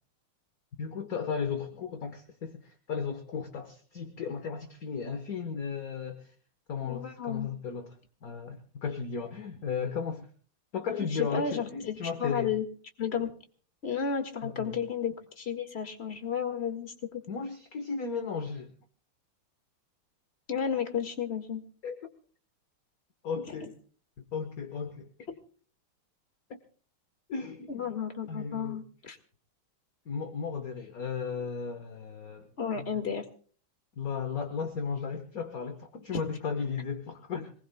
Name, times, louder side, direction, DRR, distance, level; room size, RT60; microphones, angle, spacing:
voice 1, 0.8-6.3 6.7-10.3 10.7-12.5 14.4-14.8 17.3-18.7 21.8-22.0 23.2-23.7 24.3-25.1 26.5-26.6 27.3-27.9 28.3-28.8 30.0-32.5 32.8-32.9 34.0-37.5, left 6 dB, 45° left, 6 dB, 1.5 m, -35 dB
voice 2, 6.8-7.5 11.1-12.6 13.0-13.3 13.8-17.2 20.5-21.6 23.5-23.7 27.7-29.2 32.6-33.3, left 7 dB, 30° left, 6 dB, 2.0 m, -33 dB
26.0 x 20.0 x 2.3 m, 0.43 s
omnidirectional pair, 2.4 m